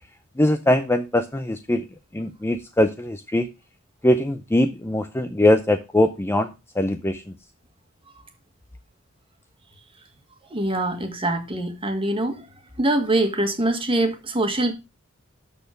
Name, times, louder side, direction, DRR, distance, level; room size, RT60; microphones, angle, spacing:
voice 1, 0.4-1.8 2.1-3.5 4.0-6.5 6.8-7.2, left 1 dB, 10° left, 0.5 m, -21 dB
voice 2, 10.5-12.4 12.8-14.7, right 1 dB, 25° right, 1.7 m, -23 dB
12.5 x 4.2 x 5.1 m
head